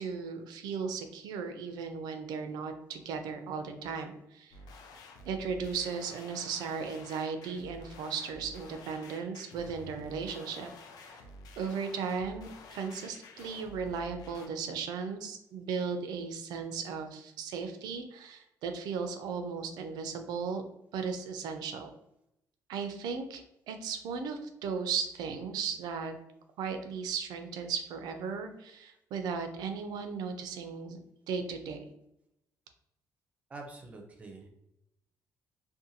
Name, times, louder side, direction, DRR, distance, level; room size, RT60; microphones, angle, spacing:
voice 1, 0.0-4.6 5.3-10.7 11.0-11.2 11.6-20.6 20.9-21.9 22.7-26.1 26.6-31.9, right 5 dB, 80° right, 7 dB, 0.4 m, -36 dB
sound 1, 4.5-14.5, left 2 dB, 70° left, 0.4 m, -50 dB
voice 2, 33.5-34.5, right 3 dB, 20° right, 2 dB, 0.4 m, -46 dB
2.5 x 2.2 x 2.8 m, 0.82 s
cardioid pair, 165°, 7 cm